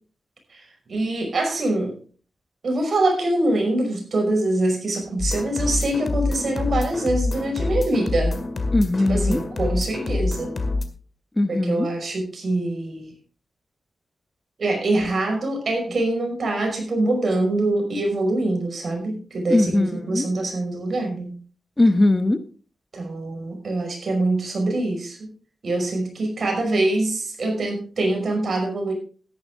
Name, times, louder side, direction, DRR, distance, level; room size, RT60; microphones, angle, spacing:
voice 1, 0.9-2.0 2.6-8.4 9.1-10.5 11.5-13.1 14.6-21.3 22.9-25.3 25.6-28.9, right 2 dB, 60° right, 3 dB, 5.4 m, -24 dB
sound 1, 5.2-10.9, left 3 dB, 50° left, 2.0 m, -26 dB
voice 2, 8.7-9.4 11.4-11.9 19.5-20.3 21.8-22.4, left 2 dB, 20° left, 10 dB, 0.9 m, -20 dB
13.5 x 11.0 x 3.6 m, 0.40 s
cardioid pair, 75°, 0 cm